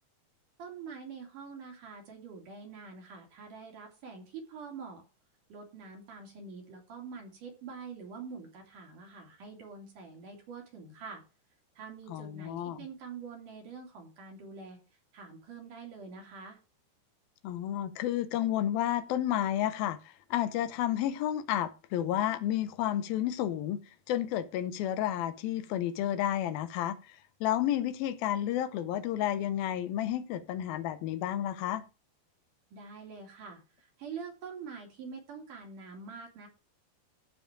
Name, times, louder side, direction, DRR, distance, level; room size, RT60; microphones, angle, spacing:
voice 1, 0.6-5.0 5.5-11.2 11.8-14.8 15.1-16.6 32.7-36.5, right 5 dB, 55° right, 3.9 m, -45 dB
voice 2, 12.1-12.9 17.4-23.8 24.1-31.8, left 12 dB, 75° left, 2.4 m, -31 dB
14.5 x 4.9 x 4.9 m
omnidirectional pair, 4.8 m